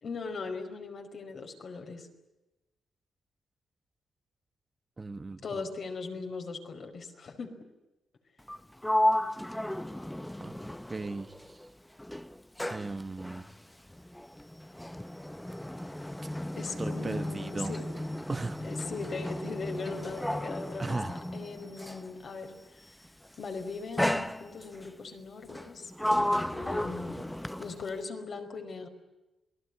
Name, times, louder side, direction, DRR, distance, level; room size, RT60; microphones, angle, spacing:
voice 1, 0.0-2.1 5.4-7.5 16.6-17.9 18.6-21.0 21.3-22.8 23.4-27.2 27.6-28.9, left 4 dB, 55° left, 4 dB, 5.0 m, -39 dB
voice 2, 5.0-5.4 10.4-10.5 10.9-11.6 12.7-13.5 16.8-17.7 18.3-18.6 20.8-21.2, right 3 dB, 25° right, 9 dB, 1.3 m, -36 dB
Sliding door, 8.4-11.7 12.0-22.2 23.0-23.4 24.0-24.9 25.5-28.0, left 1 dB, 5° left, 0.9 m, -33 dB
28.0 x 19.5 x 9.9 m, 1.0 s
cardioid pair, 95°, 0 cm